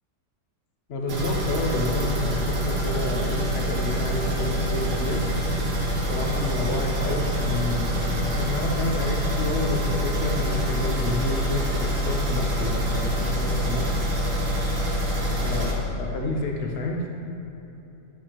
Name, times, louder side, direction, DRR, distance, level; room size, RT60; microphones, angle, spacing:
voice 1, 0.9-5.2 6.0-13.9 15.4-17.1, left 2 dB, 50° left, 1 dB, 0.9 m, -29 dB
sound 1, 1.1-15.7, equal, 80° right, 1.7 m, -26 dB
9.4 x 6.7 x 2.9 m, 3.0 s
omnidirectional pair, 1.8 m